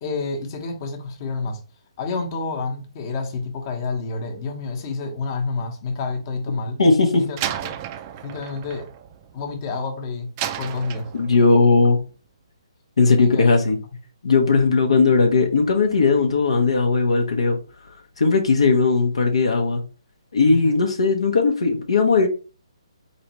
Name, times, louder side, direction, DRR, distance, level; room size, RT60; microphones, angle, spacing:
voice 1, 0.0-1.6 2.0-6.8 7.2-7.4 7.6-7.7 8.2-8.9 9.3-10.3 10.6-11.1 13.2-13.5 20.5-20.8, left 4 dB, 35° left, 1.0 m, -29 dB
voice 2, 6.8-7.2 11.1-12.0 13.0-13.8 14.2-17.6 18.2-19.8 20.3-22.3, left 4 dB, 75° left, 0.9 m, -18 dB
Slam, 7.4-9.8 10.4-11.6, right 11 dB, 25° right, 0.4 m, -32 dB
4.1 x 3.2 x 3.0 m
hypercardioid pair, 145°, 3 cm